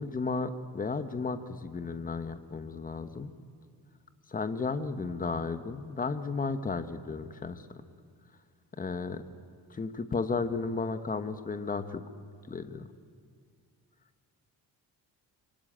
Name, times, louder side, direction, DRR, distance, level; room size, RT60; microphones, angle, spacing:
voice 1, 0.0-3.3 4.3-7.6 8.8-9.2 9.7-12.0 12.5-12.9, left 4 dB, 20° left, 10 dB, 1.2 m, -33 dB
26.5 x 22.5 x 8.9 m, 2.2 s
cardioid pair, 155°, 38 cm